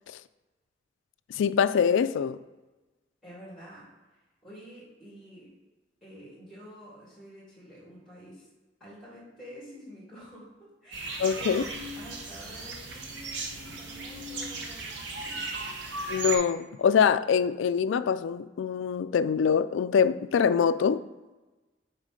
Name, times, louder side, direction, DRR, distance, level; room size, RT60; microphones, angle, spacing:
voice 1, 1.4-2.4 11.2-11.6 16.1-21.0, left 7 dB, 80° left, 0.3 m, -24 dB
voice 2, 3.2-3.8 4.4-5.5 6.0-8.5 8.8-11.7 12.0-15.4, equal, ahead, 2.4 m, -48 dB
sound 1, 10.9-16.4, right 3 dB, 70° right, 0.9 m, -36 dB
7.4 x 3.7 x 5.1 m
head